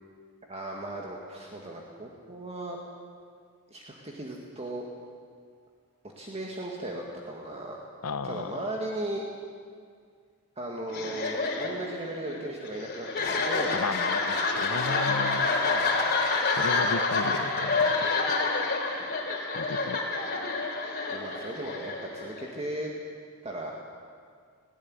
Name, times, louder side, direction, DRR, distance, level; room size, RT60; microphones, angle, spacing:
voice 1, 0.5-2.8 3.7-4.8 6.2-7.8 8.2-9.2 10.6-13.8 14.5-15.0 15.4-15.9 21.1-22.9 23.4-23.7, right 1 dB, 30° right, -1 dB, 2.0 m, -37 dB
voice 2, 8.0-8.5 13.7-15.5 16.5-18.3 19.5-20.2, left 4 dB, 75° left, 13 dB, 0.9 m, -35 dB
sound 1, 10.9-22.6, left 3 dB, 45° left, 3.3 m, -28 dB
18.5 x 17.0 x 9.8 m, 2.1 s
head